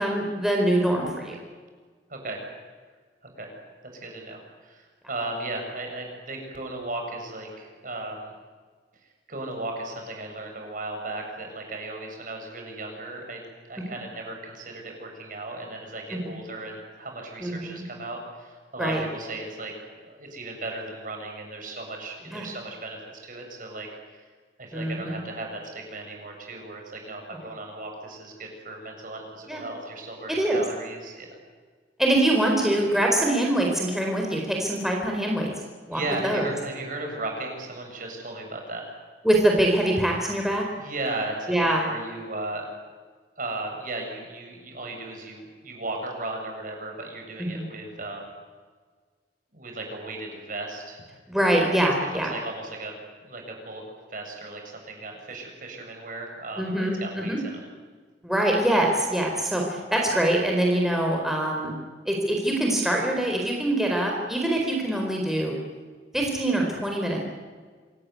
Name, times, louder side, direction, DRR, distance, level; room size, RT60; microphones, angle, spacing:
voice 1, 0.0-1.3 16.1-16.3 17.4-17.8 18.8-19.0 22.3-22.5 24.7-25.2 27.3-27.4 29.5-29.6 30.3-30.6 32.0-35.5 35.9-36.4 39.2-40.6 41.5-41.8 47.4-47.6 51.3-52.3 56.6-57.4 58.2-61.7 62.1-65.5 66.1-67.2, right 1 dB, ahead, 0 dB, 4.4 m, -24 dB
voice 2, 2.1-2.4 3.3-3.5 3.9-8.3 9.3-19.7 20.0-23.9 24.6-31.3 35.9-38.9 40.7-42.7 43.4-48.3 49.5-51.0 52.0-52.9 53.2-53.8 54.1-57.6, right 2 dB, 50° right, 2 dB, 7.6 m, -36 dB
27.0 x 19.0 x 9.6 m, 1.5 s
head